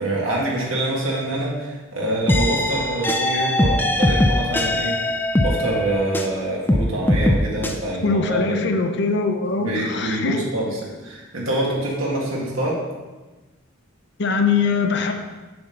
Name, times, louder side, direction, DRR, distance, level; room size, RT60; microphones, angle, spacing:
voice 1, 0.0-8.6 9.4-12.8, right 1 dB, 85° right, -4 dB, 2.0 m, -26 dB
sound 1, 2.3-6.4 6.7-7.7, left 1 dB, 10° left, 0.4 m, -21 dB
voice 2, 8.0-10.4 14.2-15.1, left 4 dB, 55° left, 6 dB, 0.7 m, -22 dB
6.8 x 4.2 x 5.2 m, 1.2 s
head